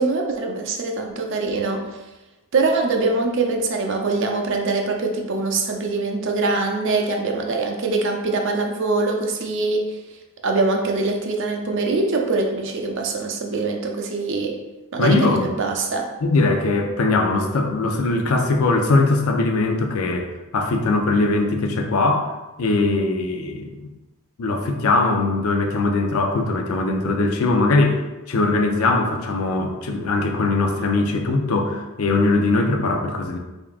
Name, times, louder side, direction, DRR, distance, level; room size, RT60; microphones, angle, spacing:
voice 1, 0.0-1.9 2.5-10.0 10.4-14.6 14.9-16.1, right 3 dB, 55° right, 2 dB, 0.5 m, -23 dB
voice 2, 15.0-15.5 16.2-20.3 20.5-22.3 22.6-23.9 24.4-33.4, left 3 dB, 75° left, 4 dB, 0.5 m, -20 dB
3.6 x 3.5 x 2.4 m, 1.1 s
head